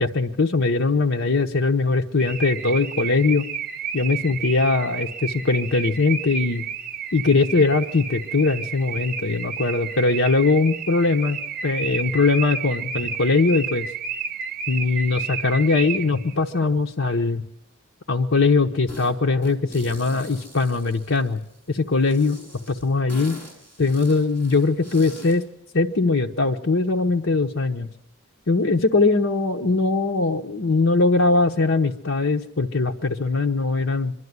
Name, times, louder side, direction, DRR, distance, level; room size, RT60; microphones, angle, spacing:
voice 1, 0.0-3.4 3.9-6.6 7.1-13.9 14.7-17.4 18.1-21.4 21.7-22.4 22.7-23.4 23.8-25.4 25.7-27.9 28.5-34.1, left 3 dB, 65° left, 3 dB, 0.9 m, -21 dB
Car / Alarm, 2.2-16.3, right 6 dB, 40° right, 0.7 m, -31 dB
sound 1, 18.9-19.1 19.4-21.5 22.0-25.4, left 1 dB, 10° left, 5.5 m, -43 dB
24.0 x 12.5 x 9.6 m, 0.79 s
head